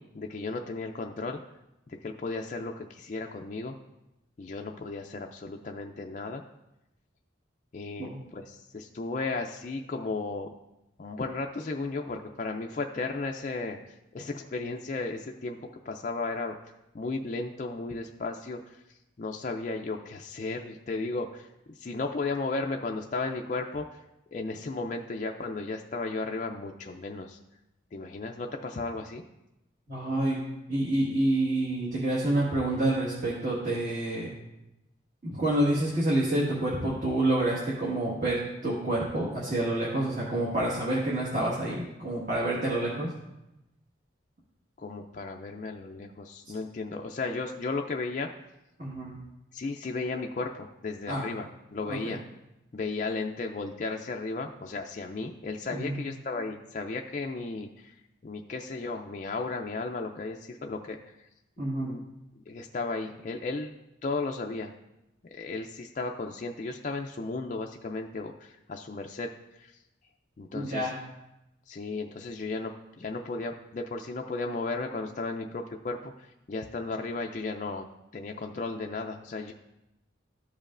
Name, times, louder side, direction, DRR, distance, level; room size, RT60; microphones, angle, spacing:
voice 1, 0.0-1.4 1.9-3.7 4.4-6.4 7.7-10.5 11.0-15.6 15.9-16.6 16.9-18.8 19.2-24.0 24.3-27.4 27.9-29.2 44.8-48.3 49.5-52.2 52.7-57.9 58.2-61.0 61.8-62.0 62.5-63.7 64.0-64.7 65.3-69.3 69.6-69.7 70.4-70.9 71.7-72.7 73.0-77.8 78.1-79.5, left 3 dB, 40° left, 2 dB, 0.4 m, -34 dB
voice 2, 29.9-30.4 30.7-34.3 35.2-43.1 48.8-49.1 51.1-51.2 51.9-52.1 55.6-56.0 61.6-61.9 70.5-70.9, right 1 dB, 40° right, -7 dB, 1.6 m, -28 dB
13.5 x 5.2 x 2.5 m, 0.91 s
head